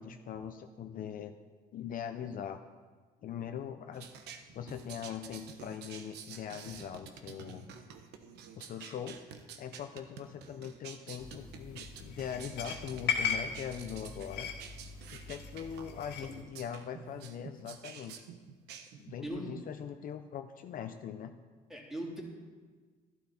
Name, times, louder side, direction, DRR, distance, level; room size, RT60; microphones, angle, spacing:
voice 1, 0.0-1.4 1.7-2.6 3.2-4.1 4.5-7.7 8.5-9.2 9.6-14.5 15.1-18.1 19.0-21.3, left 8 dB, 55° left, 7 dB, 0.7 m, -41 dB
sound 1, 3.9-19.3, right 7 dB, 85° right, 1.1 m, -49 dB
sound 2, 11.2-16.4, left 6 dB, 80° left, 1.9 m, -38 dB
voice 2, 21.7-22.2, right 1 dB, ahead, -3 dB, 3.1 m, -39 dB
12.0 x 12.0 x 4.3 m, 1.5 s
cardioid pair, 110°, 17 cm